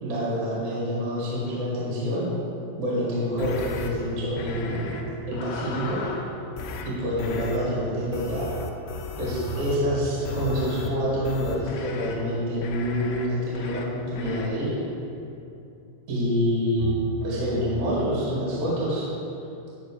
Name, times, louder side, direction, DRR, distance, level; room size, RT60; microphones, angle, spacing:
voice 1, 0.0-2.3 2.8-4.9 5.3-6.2 6.8-8.5 9.2-14.7 16.1-16.9 17.2-19.1, equal, 50° right, -7 dB, 2.6 m, -27 dB
sound 1, 3.3-3.9 4.3-8.8 9.5-15.1 16.8-18.0, right 2 dB, 90° right, 2.4 m, -39 dB
sound 2, 3.4-3.9 4.4-5.0 5.3-6.2 6.6-6.9 7.2-7.6 8.1-9.8 10.2-10.9 11.2-12.1 12.6-13.3 13.6-13.8 14.2-14.5, left 4 dB, 80° left, 2.8 m, -36 dB
11.0 x 6.1 x 5.0 m, 2.7 s
omnidirectional pair, 5.4 m